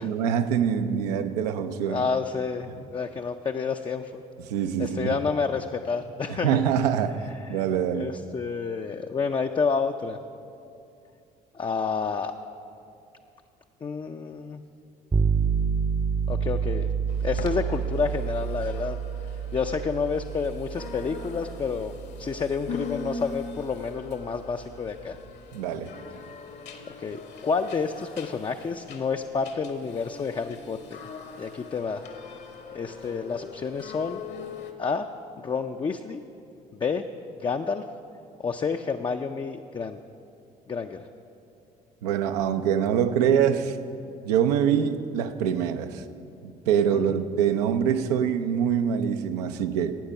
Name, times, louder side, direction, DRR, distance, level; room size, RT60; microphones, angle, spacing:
voice 1, 0.0-2.1 4.4-5.2 6.3-8.1 25.5-25.9 42.0-43.8 44.2-46.0 46.4-50.0, right 8 dB, 80° right, 9 dB, 0.6 m, -25 dB
voice 2, 1.9-4.2 4.8-6.6 7.5-7.6 7.9-10.2 11.5-12.3 13.8-14.6 16.3-16.9 17.2-19.0 19.5-21.9 22.2-25.2 27.0-30.8 31.4-32.0 32.7-34.2 34.8-35.1 35.4-36.2 36.7-37.0 37.4-37.8 38.4-40.0 40.7-41.1 46.9-47.2, left 5 dB, 25° left, 5 dB, 0.4 m, -29 dB
sound 1, 15.1-25.0, right 6 dB, 20° right, 0.6 m, -29 dB
sound 2, 17.1-34.7, left 5 dB, 60° left, 1.1 m, -42 dB
12.0 x 8.8 x 5.5 m, 2.6 s
hypercardioid pair, 55°, 20 cm